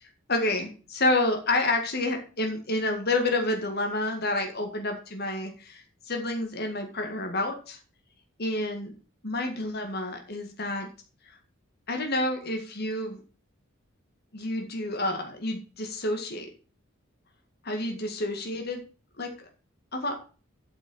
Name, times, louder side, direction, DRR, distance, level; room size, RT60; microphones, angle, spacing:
voice 1, 0.0-7.8 8.4-8.9 9.2-10.9 11.9-13.2 14.3-16.5 17.6-18.8 19.2-19.3 19.9-20.1, left 2 dB, 50° left, 4 dB, 2.0 m, -29 dB
8.3 x 6.0 x 7.9 m, 0.37 s
head